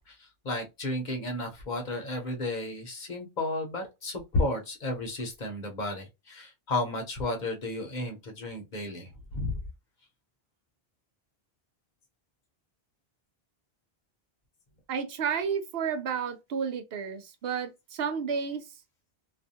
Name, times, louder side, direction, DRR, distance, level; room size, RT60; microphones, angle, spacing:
voice 1, 0.1-9.6, left 2 dB, 50° left, 0.8 m, -33 dB
voice 2, 14.9-18.6, right 6 dB, 75° right, 0.8 m, -31 dB
2.4 x 2.3 x 2.7 m
omnidirectional pair, 1.0 m